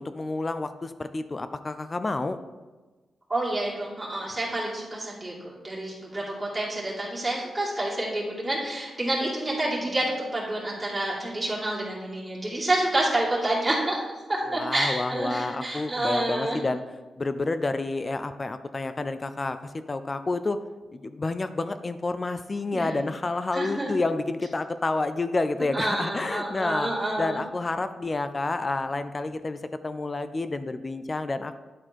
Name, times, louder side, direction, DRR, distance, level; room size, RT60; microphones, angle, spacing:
voice 1, 0.0-2.4 14.4-16.8 17.2-20.6 20.9-26.9 27.2-31.6, left 3 dB, 30° left, 11 dB, 0.4 m, -29 dB
voice 2, 3.3-5.3 5.6-14.0 14.5-16.6 22.7-22.9 23.5-23.9 25.7-27.4, right 1 dB, 15° right, -6 dB, 2.8 m, -28 dB
10.0 x 4.3 x 4.4 m, 1.2 s
wide cardioid pair, 110°, 0 cm